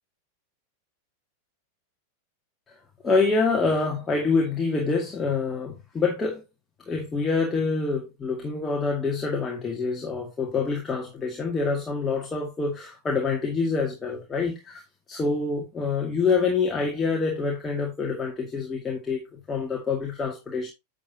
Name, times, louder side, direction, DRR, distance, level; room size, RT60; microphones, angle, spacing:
voice 1, 3.0-6.4 6.9-14.8 15.1-20.7, left 4 dB, 15° left, 2.0 m, -26 dB
10.0 x 6.6 x 2.8 m
figure-of-eight pair, 90°, 0 cm